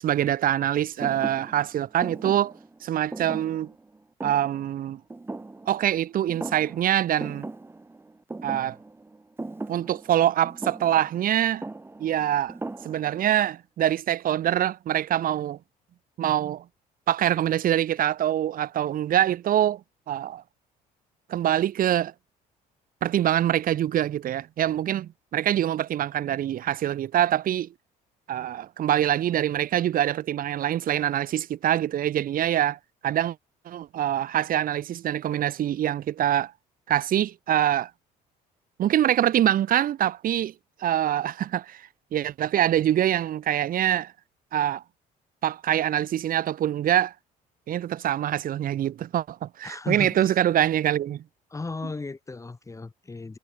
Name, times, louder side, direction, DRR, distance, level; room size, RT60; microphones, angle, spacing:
voice 1, 0.0-2.5 2.8-3.7 4.2-5.0 5.7-7.5 8.4-8.8 9.7-11.6 12.0-12.6 12.8-15.6 16.2-16.6 17.1-19.8 20.1-20.4 21.3-22.1 23.0-27.7 28.3-33.4 33.6-36.5 36.9-37.9 38.8-40.5 40.8-44.1 44.5-44.8 45.4-47.1 47.7-51.2, right 11 dB, 55° right, 1.5 m, -24 dB
Thump thud, 1.0-6.0 6.3-6.9 7.2-13.3, right 2 dB, 15° right, 1.7 m, -39 dB
voice 2, 49.6-50.4 51.5-53.4, left 3 dB, 20° left, 2.4 m, -35 dB
cardioid pair, 110°, 17 cm